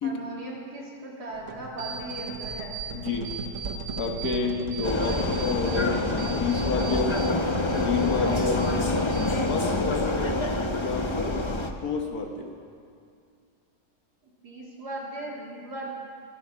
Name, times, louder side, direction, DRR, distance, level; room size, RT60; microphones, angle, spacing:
voice 1, 0.0-2.8 14.4-15.9, right 1 dB, 75° right, -4 dB, 3.4 m, -38 dB
sound 1, 1.3-6.2, right 4 dB, 55° right, 1.1 m, -38 dB
sound 2, 1.8-2.9 3.2-4.4 4.7-7.3 7.6-8.8 9.1-9.7, right 5 dB, 40° right, 3.4 m, -39 dB
voice 2, 2.9-3.3 4.0-7.1 7.7-8.7 9.5-10.4 10.7-11.4 11.8-12.5, left 4 dB, 65° left, 3 dB, 1.9 m, -29 dB
Vehicle, 4.8-11.7, left 2 dB, 30° left, 0.6 m, -26 dB
22.5 x 8.8 x 6.2 m, 2.3 s
omnidirectional pair, 1.7 m